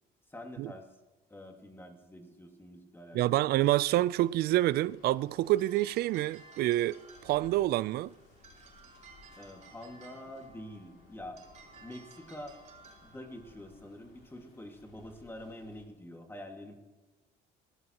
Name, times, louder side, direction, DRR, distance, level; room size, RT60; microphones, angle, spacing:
voice 1, 0.3-0.9 1.3-3.5 9.4-11.4 11.8-12.6 13.0-16.8, left 1 dB, 15° left, 1.9 m, -46 dB
voice 2, 3.1-8.1, right 15 dB, 70° right, 0.4 m, -27 dB
Traffic noise roadway noise, 3.8-15.8, left 5 dB, 75° left, 2.5 m, -62 dB
sound 1, 5.3-15.7, right 4 dB, 40° right, 4.7 m, -57 dB
19.5 x 12.5 x 2.9 m
cardioid pair, 110°, 17 cm